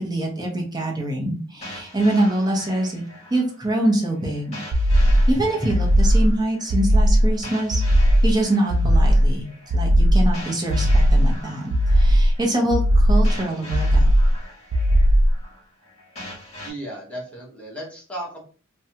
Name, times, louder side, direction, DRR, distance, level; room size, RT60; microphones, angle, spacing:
voice 1, 0.0-3.0 3.3-4.6 5.3-7.8 8.2-9.5 9.7-11.6 11.9-14.1, right 1 dB, 20° right, 0 dB, 0.7 m, -24 dB
sound 1, 1.6-16.7, left 1 dB, 30° left, 1.1 m, -42 dB
sound 2, 4.7-5.3 5.7-6.3 6.7-7.3 7.7-8.3 8.7-9.3 9.7-10.3 10.7-11.3 11.7-12.3 12.7-13.3 13.7-14.3 14.7-15.4, equal, 70° right, 0.4 m, -16 dB
voice 2, 16.6-18.4, right 1 dB, 5° left, -3 dB, 0.9 m, -35 dB
2.6 x 2.2 x 2.7 m, 0.39 s
head